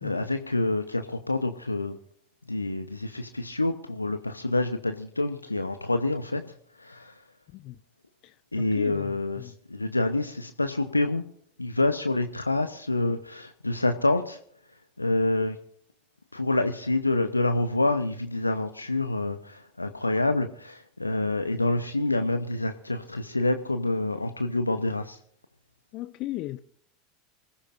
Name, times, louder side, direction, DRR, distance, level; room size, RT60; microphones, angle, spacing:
voice 1, 0.0-2.0 2.5-6.4 6.8-7.1 8.5-11.2 11.6-14.4 15.0-15.6 16.3-25.2, left 2 dB, 85° left, 0.8 m, -27 dB
voice 2, 8.2-9.6 25.9-26.6, left 16 dB, 45° left, 0.7 m, -37 dB
25.5 x 15.5 x 2.5 m
figure-of-eight pair, 80°, 0 cm